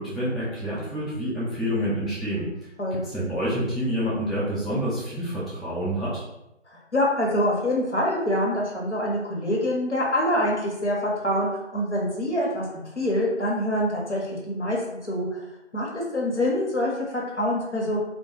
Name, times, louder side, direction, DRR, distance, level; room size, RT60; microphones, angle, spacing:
voice 1, 0.0-2.5 2.9-6.2, equal, ahead, -10 dB, 0.5 m, -28 dB
voice 2, 6.9-15.4 15.7-18.0, left 1 dB, 65° left, -3 dB, 0.9 m, -25 dB
2.2 x 2.2 x 2.9 m, 0.88 s
figure-of-eight pair, 180°, 37 cm